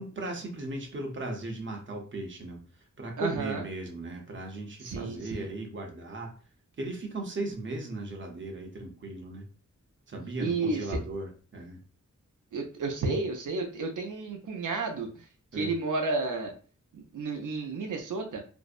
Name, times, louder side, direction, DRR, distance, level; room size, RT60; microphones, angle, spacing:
voice 1, 0.0-2.6 3.0-6.3 6.8-9.5 10.1-11.8 15.5-15.8, right 2 dB, 40° right, 2 dB, 0.6 m, -37 dB
voice 2, 3.2-3.6 4.8-5.5 10.4-11.0 12.5-15.1 15.5-16.5 16.9-18.4, right 3 dB, 80° right, 3 dB, 0.5 m, -31 dB
2.6 x 2.0 x 2.4 m, 0.38 s
wide cardioid pair, 110°, 31 cm